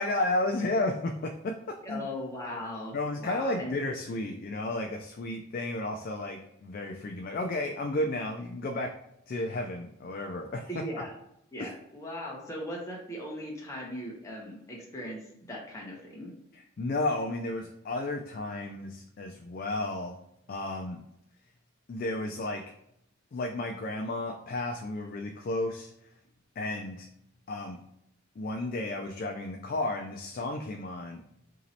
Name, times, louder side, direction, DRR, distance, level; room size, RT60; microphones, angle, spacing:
voice 1, 0.0-2.0 2.9-8.9 9.3-10.8 11.6-11.7 16.5-20.2 20.5-21.0 21.9-22.6 23.3-25.9 26.6-27.1 27.5-27.8 28.4-31.2, left 2 dB, 45° left, 3 dB, 0.3 m, -33 dB
voice 2, 1.8-3.8 10.7-11.1 11.5-15.2 15.5-16.3, left 1 dB, 15° left, -3 dB, 0.7 m, -38 dB
3.0 x 2.8 x 4.0 m, 0.76 s
head